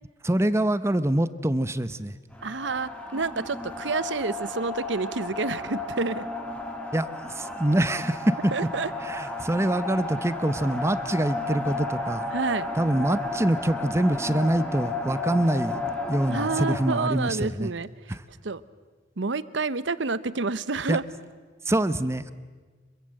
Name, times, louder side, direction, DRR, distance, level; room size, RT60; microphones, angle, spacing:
voice 1, 0.2-2.2 6.9-8.5 9.0-12.3 12.8-15.8 16.1-17.7 18.1-18.2 20.9-21.0 21.7-22.3, right 1 dB, 15° right, 14 dB, 0.7 m, -25 dB
sound 1, 2.3-17.0, left 2 dB, 5° left, 2.3 m, -33 dB
voice 2, 2.4-6.3 8.5-8.9 12.3-12.7 16.3-18.1 18.4-18.6 19.2-21.0, right 3 dB, 70° right, 16 dB, 0.9 m, -29 dB
25.5 x 22.5 x 7.7 m, 1.4 s
head